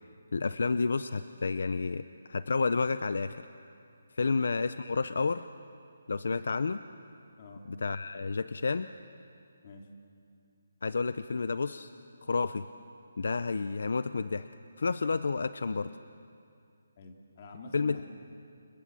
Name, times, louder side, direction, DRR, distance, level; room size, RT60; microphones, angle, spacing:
voice 1, 0.3-2.0 2.3-3.4 4.1-5.5 6.1-6.8 7.8-8.9 10.8-11.9 12.2-12.6 13.2-14.5 14.8-15.9 17.7-18.0, left 4 dB, 55° left, 13 dB, 0.6 m, -30 dB
voice 2, 17.0-18.0, left 2 dB, 25° left, 1 dB, 2.6 m, -47 dB
30.0 x 26.0 x 7.6 m, 2.5 s
hypercardioid pair, 180°, 0 cm